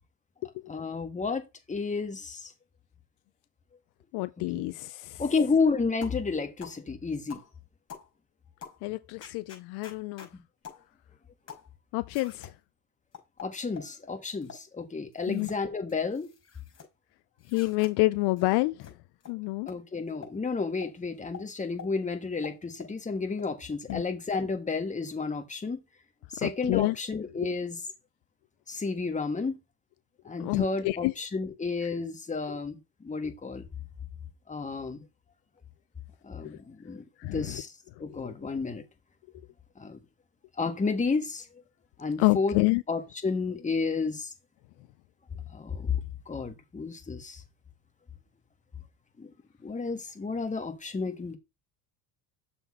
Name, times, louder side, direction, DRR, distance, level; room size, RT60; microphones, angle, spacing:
voice 1, 0.7-1.4 1.7-2.5 4.5-4.7 5.2-7.4 10.3-10.4 13.4-16.3 19.7-25.8 26.3-27.8 28.7-29.6 30.2-33.6 34.5-35.0 36.2-37.7 38.0-38.8 39.8-40.0 40.6-41.4 42.0-42.6 42.9-44.3 45.5-47.4 49.2-49.3 49.6-51.4, left 4 dB, 15° left, 1.6 m, -31 dB
voice 2, 4.1-5.2 8.8-10.3 11.9-12.5 15.3-15.5 17.5-18.9 19.3-19.7 23.9-24.0 26.4-27.0 30.4-31.1 37.2-37.6 38.2-38.3 42.2-42.8, left 22 dB, 65° left, 0.5 m, -28 dB
sound 1, 6.0-6.2 6.6-6.8 7.3-7.5 7.9-8.1 8.6-8.8 9.2-10.3 10.6-10.8 11.5-11.7 12.1-12.5 13.1-13.9 14.4-14.6 15.1-15.6 15.9-16.9 17.4-17.9 18.4-18.5 18.8-18.9 19.2-19.3 19.7-19.8 20.2-20.4 20.8-20.9 21.3-21.5 21.8-21.9 22.4-23.0 23.4-23.5 23.9-24.0 24.3-24.5, left 7 dB, 35° left, 5.1 m, -46 dB
6.9 x 4.3 x 4.2 m
supercardioid pair, 105°, 43 cm